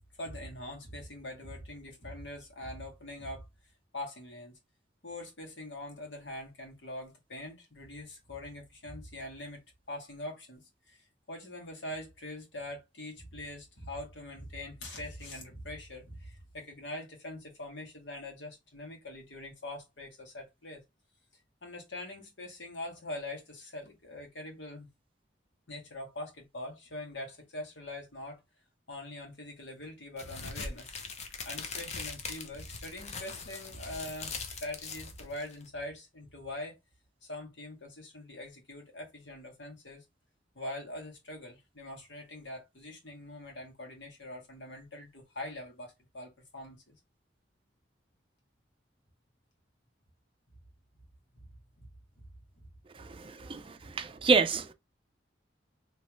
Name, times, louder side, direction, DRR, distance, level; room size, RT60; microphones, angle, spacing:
voice 1, 0.2-3.4 3.9-4.6 5.0-9.6 9.9-11.0 11.3-20.8 21.6-24.9 25.7-28.4 28.9-30.9 31.4-36.8 37.2-40.0 40.6-47.0 51.3-51.5 51.8-51.9 52.2-52.3 52.6-52.7 53.0-53.1 53.4-53.5 53.8-53.9 54.2-54.3, left 1 dB, 85° left, 1.7 m, -43 dB
sound 1, 30.2-35.7, left 4 dB, 40° left, 0.7 m, -41 dB
voice 2, 52.9-54.7, right 4 dB, 30° right, 0.4 m, -28 dB
3.2 x 3.1 x 3.1 m
head